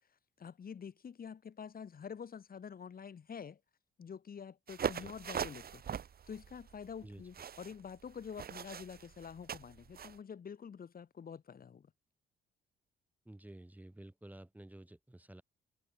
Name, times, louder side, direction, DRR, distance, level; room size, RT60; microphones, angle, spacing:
voice 1, 0.4-3.6 4.0-5.8 6.3-11.9, left 7 dB, 45° left, 5.2 m, -47 dB
sound 1, 4.7-10.2, right 8 dB, 50° right, 1.8 m, -41 dB
voice 2, 13.2-15.4, right 1 dB, 10° right, 7.7 m, -52 dB
cardioid pair, 90°, 20 cm